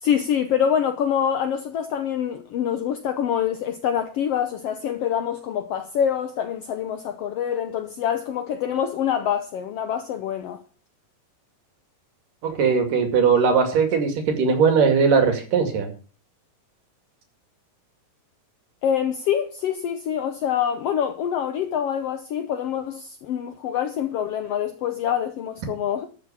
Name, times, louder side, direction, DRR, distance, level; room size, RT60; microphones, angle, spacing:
voice 1, 0.0-10.6 18.8-26.1, left 9 dB, 75° left, 1.4 m, -25 dB
voice 2, 12.4-15.9, right 5 dB, 70° right, 3.9 m, -19 dB
13.0 x 6.3 x 7.2 m
omnidirectional pair, 3.9 m